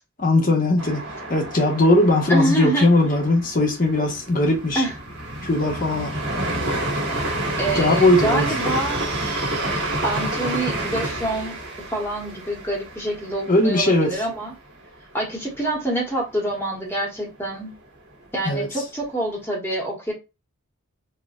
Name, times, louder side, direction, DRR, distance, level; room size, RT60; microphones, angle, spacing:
voice 1, 0.2-1.0 1.3-4.8 5.4-6.1 7.7-8.5 13.5-14.2 18.4-18.7, left 2 dB, 40° left, 1.2 m, -19 dB
sound 1, 0.8-14.5 14.8-14.9 15.3-15.9, right 1 dB, 55° right, 1.5 m, -29 dB
voice 2, 2.3-3.1 4.7-5.0 7.6-9.0 10.0-11.6 11.9-14.5 15.1-17.7 18.3-20.1, right 1 dB, 10° left, 1.2 m, -26 dB
4.4 x 2.5 x 2.4 m
head